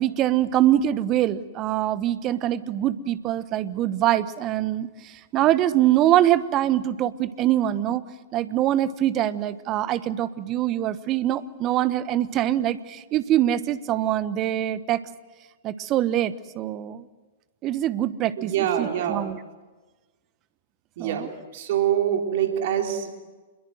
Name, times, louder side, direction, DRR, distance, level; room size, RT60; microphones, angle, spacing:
voice 1, 0.0-8.0 8.3-15.0 15.6-17.1 17.6-19.4 21.0-21.3, right 12 dB, 30° right, 15 dB, 1.2 m, -24 dB
voice 2, 18.4-19.3 21.0-23.2, right 10 dB, 50° right, 3 dB, 3.8 m, -25 dB
27.0 x 22.0 x 7.8 m, 1.3 s
figure-of-eight pair, 110°, 0 cm